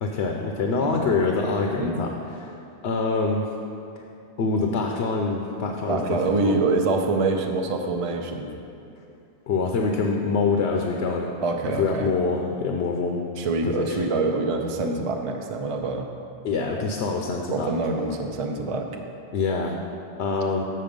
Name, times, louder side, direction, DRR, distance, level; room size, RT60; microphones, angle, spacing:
voice 1, 0.0-2.6 2.8-3.5 4.4-6.2 6.4-6.6 9.5-11.3 11.8-13.3 13.7-14.1 16.4-17.7 19.3-19.8 20.2-20.6, left 4 dB, 80° left, 2 dB, 0.9 m, -25 dB
voice 2, 5.9-8.5 11.4-12.1 13.4-16.1 17.5-18.9, right 3 dB, 40° right, 3 dB, 0.5 m, -25 dB
7.6 x 6.2 x 5.2 m, 2.6 s
omnidirectional pair, 1.1 m